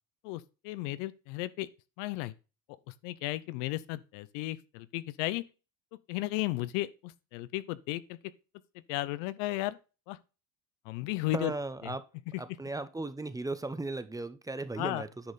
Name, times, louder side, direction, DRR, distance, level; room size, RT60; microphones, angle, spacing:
voice 1, 0.2-1.7 2.0-2.3 2.9-5.4 6.1-8.2 8.9-9.8 10.1-10.2 10.8-11.5 11.8-11.9 12.3-12.4 14.8-15.0, left 17 dB, 85° left, 0.7 m, -34 dB
voice 2, 11.3-12.0 12.4-15.1, right 2 dB, 10° right, 0.7 m, -36 dB
10.0 x 5.3 x 4.1 m
supercardioid pair, 105°, 36 cm